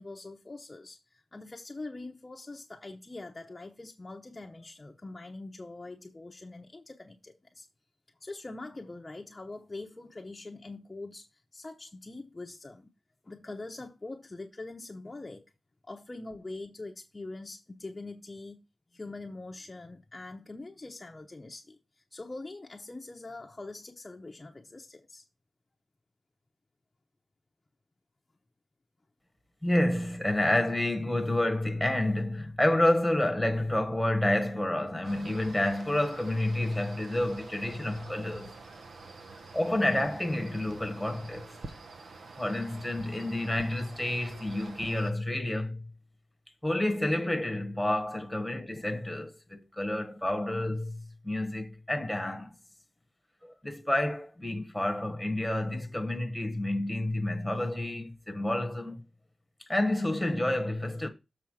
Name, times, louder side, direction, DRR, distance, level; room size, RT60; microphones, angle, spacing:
voice 1, 0.0-7.7 8.2-12.9 13.2-15.4 15.8-18.6 18.9-21.8 22.1-25.2 37.9-38.0 39.7-39.8 44.2-44.4 47.1-47.2 48.7-48.8, left 2 dB, 25° left, 0.8 m, -43 dB
voice 2, 29.6-38.5 39.5-41.5 42.4-45.9 46.6-52.6 53.4-59.0 59.6-61.1, left 1 dB, ahead, 1.3 m, -29 dB
sound 1, 35.0-45.1, right 3 dB, 65° right, 0.9 m, -47 dB
7.2 x 4.2 x 6.4 m
wide cardioid pair, 140°, 0 cm